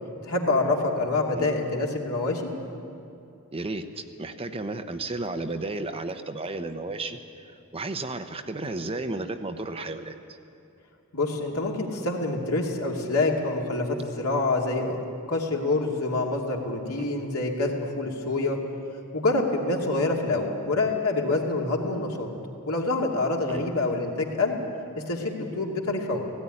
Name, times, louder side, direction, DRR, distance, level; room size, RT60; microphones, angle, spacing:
voice 1, 0.2-2.5 11.1-15.0 15.3-18.6 19.1-22.3 22.7-24.6 25.1-26.2, left 2 dB, 75° left, -1 dB, 2.6 m, -26 dB
voice 2, 3.5-10.1 17.0-17.1 23.5-23.6, right 2 dB, 25° right, 7 dB, 0.9 m, -33 dB
17.0 x 16.0 x 9.9 m, 2.6 s
head